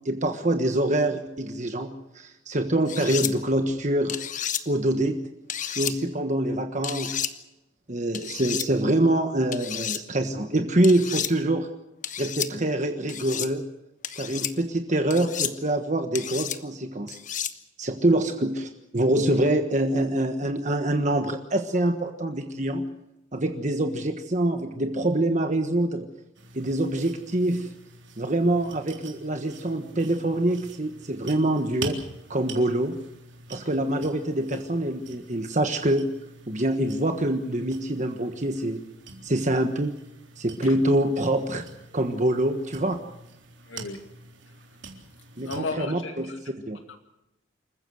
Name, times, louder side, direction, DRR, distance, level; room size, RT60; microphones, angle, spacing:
voice 1, 0.0-4.2 4.6-5.2 5.8-7.2 7.9-11.7 12.2-13.6 14.2-17.2 17.8-22.9 23.3-26.1 26.5-27.7 28.2-32.0 32.3-33.0 33.5-36.1 36.5-38.8 39.2-39.9 40.4-41.7 41.9-43.0 45.4-46.3 46.7-46.8, right 1 dB, 40° right, 6 dB, 1.4 m, -25 dB
sound 1, 2.9-3.3 4.1-4.6 5.5-5.9 6.8-7.3 8.1-8.7 9.5-10.0 10.8-11.3 12.0-12.5 13.1-13.5 14.0-14.5 15.1-15.5 16.1-16.6 17.1-17.5, left 10 dB, 40° left, 1.2 m, -31 dB
sound 2, 26.3-45.6, right 3 dB, 65° right, 3.7 m, -45 dB
voice 2, 43.7-44.1 44.5-44.6 45.4-47.0, left 3 dB, 85° left, 5 dB, 2.3 m, -36 dB
27.5 x 15.0 x 7.8 m, 0.90 s
head